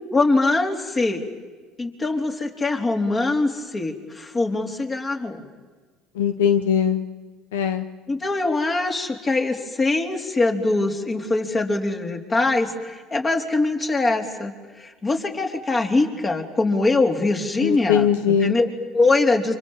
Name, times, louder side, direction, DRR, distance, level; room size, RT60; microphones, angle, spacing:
voice 1, 0.1-1.2 1.8-5.5 8.1-19.5, left 3 dB, 30° left, 3 dB, 4.0 m, -23 dB
voice 2, 6.2-7.0 7.5-7.8 17.6-18.6, left 8 dB, 85° left, 9 dB, 1.0 m, -20 dB
29.5 x 26.0 x 7.4 m, 1.4 s
hypercardioid pair, 75°, 0 cm